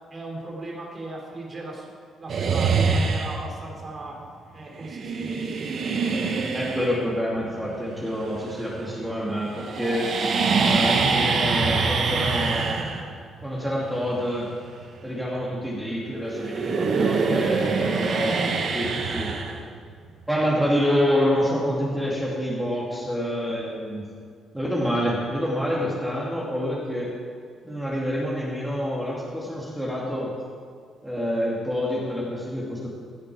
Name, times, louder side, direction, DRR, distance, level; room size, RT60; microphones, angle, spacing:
voice 1, 0.1-1.9 2.2-4.1 4.5-5.6 9.6-9.7, right 2 dB, 35° right, -2 dB, 3.4 m, -37 dB
sound 1, 2.3-3.6 4.8-9.1 9.3-15.9 16.2-20.1, right 4 dB, 60° right, 1.1 m, -25 dB
voice 2, 6.5-12.7 13.4-14.5 15.0-19.3 20.3-24.1 24.5-27.1 27.6-30.3 31.0-32.9, equal, 5° right, -5 dB, 2.5 m, -27 dB
16.5 x 6.8 x 5.0 m, 2.1 s
cardioid pair, 90°, 0 cm